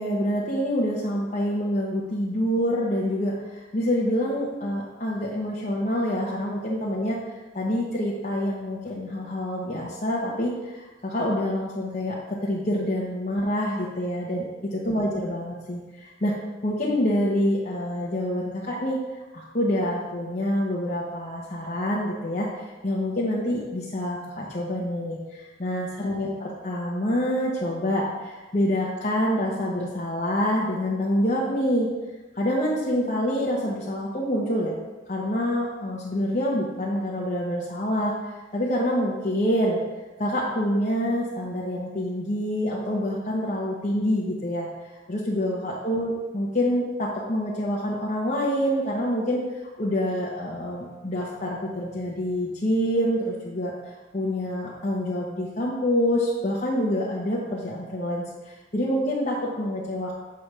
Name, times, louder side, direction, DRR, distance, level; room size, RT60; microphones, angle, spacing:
voice 1, 0.0-7.2 7.5-16.3 16.6-19.0 19.3-31.9 32.3-34.8 35.1-38.1 38.5-39.8 40.2-44.7 45.1-49.4 49.8-53.7 54.1-60.1, equal, 40° left, -6 dB, 0.9 m, -26 dB
7.0 x 3.3 x 6.1 m, 1.2 s
head